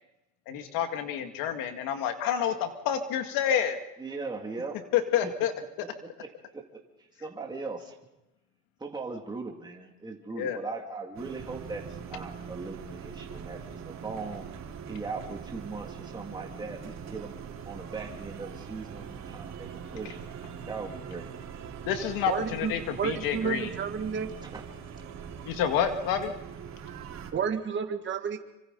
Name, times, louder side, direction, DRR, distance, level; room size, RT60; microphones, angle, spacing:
voice 1, 0.5-3.8 4.9-5.5 10.3-10.6 21.8-23.7 25.4-26.3, left 9 dB, 80° left, 6 dB, 2.1 m, -28 dB
voice 2, 4.0-4.7 6.2-6.6 7.2-7.9 8.8-14.4 14.9-17.4 17.7-20.2 20.7-21.3 24.4-24.6, right 4 dB, 10° right, 0 dB, 2.5 m, -39 dB
sound 1, 11.1-27.3, right 7 dB, 50° right, 3.7 m, -42 dB
voice 3, 22.3-22.7 23.0-24.3 27.3-28.4, right 7 dB, 35° right, 4 dB, 1.9 m, -31 dB
26.5 x 25.0 x 4.0 m, 0.93 s
cardioid pair, 135°, 34 cm